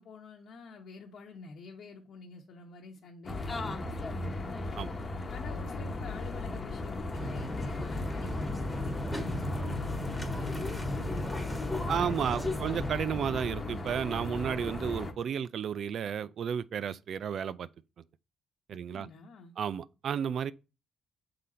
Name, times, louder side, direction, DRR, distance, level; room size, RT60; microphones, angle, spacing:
voice 1, 0.0-4.4 5.3-12.7 18.7-19.5, left 4 dB, 65° left, 1.0 m, -49 dB
sound 1, 3.2-15.1, left 2 dB, 30° left, 1.0 m, -36 dB
sound 2, 7.1-12.9, left 1 dB, ahead, 1.6 m, -36 dB
voice 2, 11.9-17.7 18.7-19.1 19.6-20.5, right 8 dB, 60° right, 0.4 m, -32 dB
6.7 x 3.9 x 4.2 m
cardioid pair, 90°, 0 cm